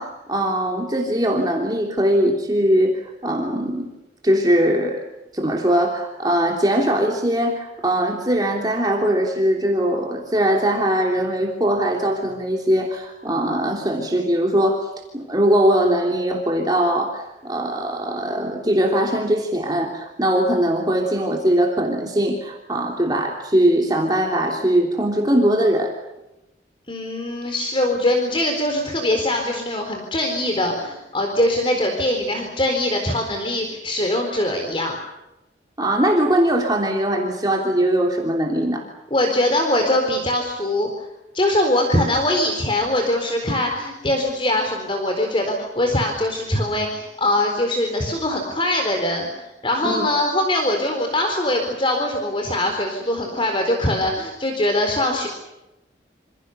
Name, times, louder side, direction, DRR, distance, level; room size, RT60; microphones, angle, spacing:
voice 1, 0.0-3.9 4.2-5.0 5.3-25.9 35.8-38.9 49.8-50.1, right 1 dB, 20° right, 0 dB, 3.1 m, -21 dB
voice 2, 26.9-35.0 39.1-40.9 41.3-55.3, left 1 dB, 30° left, 3 dB, 4.2 m, -22 dB
27.5 x 27.5 x 6.8 m, 0.97 s
head